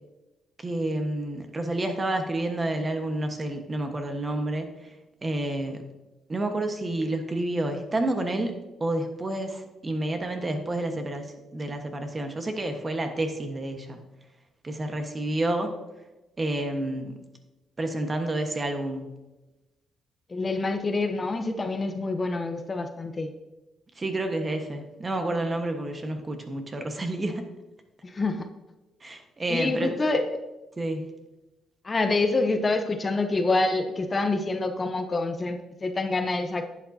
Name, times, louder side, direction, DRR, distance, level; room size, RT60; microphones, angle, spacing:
voice 1, 0.6-4.9 5.2-5.8 6.3-8.5 8.8-14.0 14.6-15.7 16.4-17.2 17.8-19.0 24.0-27.4 29.0-29.9 30.8-31.0, right 1 dB, 25° right, 5 dB, 1.3 m, -29 dB
voice 2, 20.3-23.3 28.0-28.5 29.5-30.2 31.8-36.6, left 3 dB, 30° left, 6 dB, 0.7 m, -26 dB
10.5 x 8.4 x 2.8 m, 1.0 s
cardioid pair, 90°, 0 cm